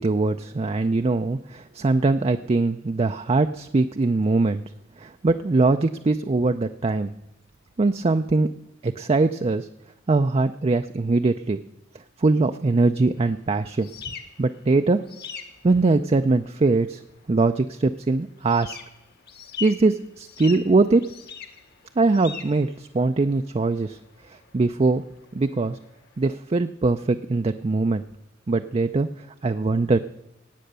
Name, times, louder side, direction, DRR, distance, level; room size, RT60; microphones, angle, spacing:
voice 1, 0.0-4.6 5.0-7.1 7.8-8.5 8.8-9.7 10.1-11.6 12.2-13.9 14.4-15.0 15.6-17.0 17.3-18.8 19.6-21.0 22.0-24.0 24.3-25.0 25.3-25.8 26.2-28.0 28.5-29.1 29.4-30.0, right 3 dB, 30° right, 8 dB, 0.4 m, -22 dB
sound 1, 13.2-26.3, left 6 dB, 55° left, 1.5 m, -43 dB
18.0 x 8.5 x 6.7 m, 0.88 s
head